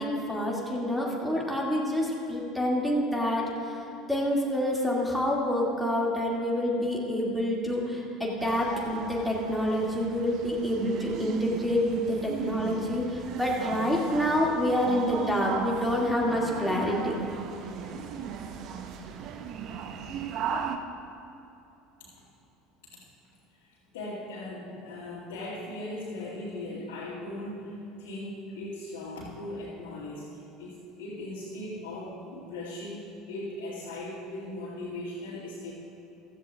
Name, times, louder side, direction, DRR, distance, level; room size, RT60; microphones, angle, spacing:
voice 1, 0.0-3.8 4.1-17.2, equal, ahead, -3 dB, 2.5 m, -27 dB
sound 1, 8.4-20.8, right 7 dB, 50° right, 0.7 m, -37 dB
voice 2, 23.6-35.7, left 1 dB, 65° left, -11 dB, 2.5 m, -39 dB
15.5 x 13.5 x 2.5 m, 2.9 s
figure-of-eight pair, 70°, 0 cm